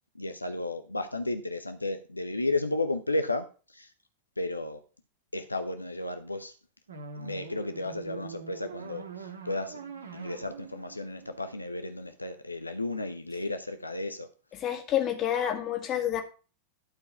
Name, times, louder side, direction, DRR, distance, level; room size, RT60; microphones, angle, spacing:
voice 1, 0.1-3.9 4.4-4.8 5.3-6.5 7.2-9.8 10.1-14.3, left 2 dB, 85° left, 8 dB, 0.7 m, -33 dB
sound 1, 6.9-12.0, right 5 dB, 70° right, 1.9 m, -44 dB
voice 2, 14.6-16.2, left 10 dB, 35° left, 5 dB, 2.0 m, -28 dB
11.5 x 4.7 x 5.6 m, 0.35 s
figure-of-eight pair, 90°, 0 cm